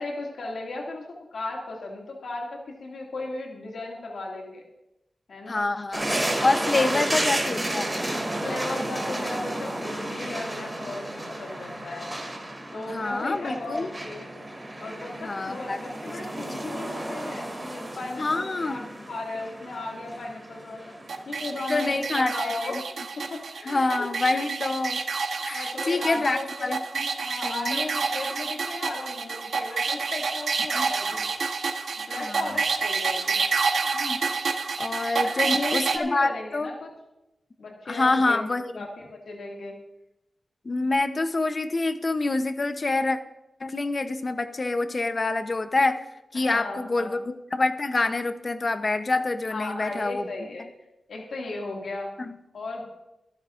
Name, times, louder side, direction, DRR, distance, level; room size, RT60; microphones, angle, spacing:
voice 1, 0.0-4.6 5.3-5.6 6.7-7.3 8.4-12.1 12.7-14.3 14.8-20.9 21.3-22.8 23.2-24.1 25.5-26.7 27.2-31.2 32.1-33.4 35.4-36.9 37.6-38.5 38.7-39.8 46.3-47.2 49.5-50.7 51.1-52.1 52.5-52.8, left 2 dB, 85° left, -1 dB, 2.2 m, -36 dB
voice 2, 5.5-6.1 6.4-8.0 12.9-13.9 15.2-15.8 16.6-16.7 18.2-18.8 21.7-22.5 23.7-25.0 25.4-27.1 27.4-27.9 30.7-30.9 32.2-32.5 33.9-34.2 34.8-36.7 37.9-38.9 40.6-43.2 43.6-46.0 46.3-50.3 52.2-52.3, left 3 dB, 35° left, 9 dB, 0.7 m, -26 dB
sound 1, 5.9-22.0, right 1 dB, 15° right, 2.4 m, -32 dB
sound 2, 21.1-36.0, right 4 dB, 85° right, 1.1 m, -28 dB
25.0 x 10.0 x 2.5 m, 0.93 s
wide cardioid pair, 145°, 0 cm